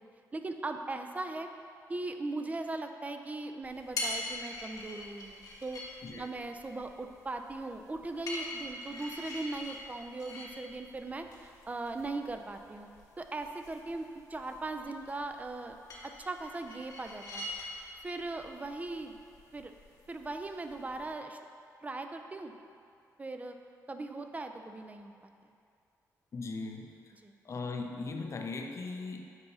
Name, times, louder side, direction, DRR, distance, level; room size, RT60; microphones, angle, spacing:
voice 1, 0.3-1.5 1.9-5.8 6.1-12.9 13.2-15.8 16.0-17.5 18.0-19.2 19.5-19.7 20.1-21.4 21.8-22.5 23.2-23.6 23.9-25.6 27.2-27.3, right 2 dB, 25° right, 6 dB, 0.4 m, -39 dB
sound 1, 3.6-21.1, left 2 dB, 70° left, 1.3 m, -44 dB
voice 2, 6.0-6.3 26.3-26.9 27.4-29.2, left 3 dB, 50° left, 3 dB, 0.6 m, -38 dB
8.0 x 2.7 x 5.4 m, 2.4 s
cardioid pair, 85°, 6 cm